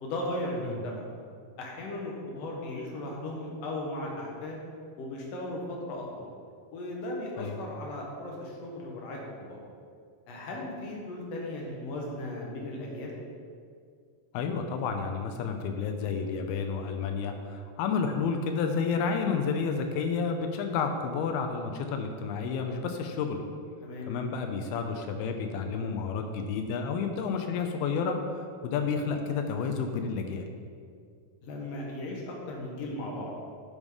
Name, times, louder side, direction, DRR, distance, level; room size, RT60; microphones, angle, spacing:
voice 1, 0.0-1.0 1.6-4.6 5.0-6.2 6.7-9.6 10.3-13.1 23.8-24.1 31.4-33.3, left 1 dB, 55° left, -2 dB, 2.0 m, -36 dB
voice 2, 14.3-23.4 24.1-30.5, left 5 dB, 90° left, 5 dB, 2.6 m, -30 dB
10.5 x 5.4 x 4.8 m, 2.2 s
omnidirectional pair, 4.3 m